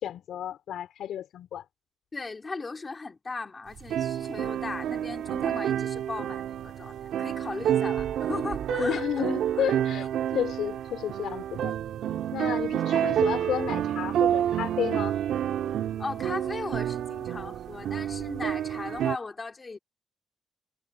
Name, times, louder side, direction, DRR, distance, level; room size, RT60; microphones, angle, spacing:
voice 1, 0.0-1.6 8.7-10.1 10.3-11.7 12.3-15.2, left 10 dB, 75° left, 5.2 m, -32 dB
voice 2, 2.1-9.3 12.4-12.8 16.0-19.8, left 3 dB, 20° left, 3.3 m, -37 dB
sound 1, 3.8-19.2, right 10 dB, 80° right, 3.4 m, -29 dB
wide cardioid pair, 170°, 0 cm